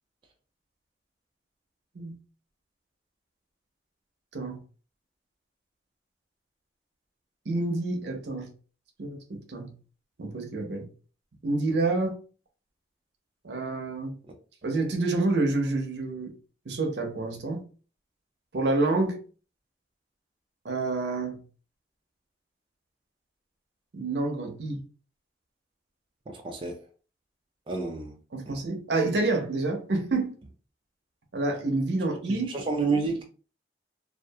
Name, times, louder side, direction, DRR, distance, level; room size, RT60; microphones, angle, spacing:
voice 1, 7.5-8.5 9.0-9.7 10.2-10.9 11.4-12.1 13.4-14.2 14.6-16.3 16.7-17.6 18.5-19.2 20.6-21.4 23.9-24.8 28.3-30.3 31.3-32.5, right 2 dB, 70° right, 0.6 m, -28 dB
voice 2, 26.3-26.8 27.7-28.2 28.5-28.6 32.2-33.2, right 4 dB, 30° right, 0.3 m, -30 dB
2.6 x 2.4 x 2.2 m
head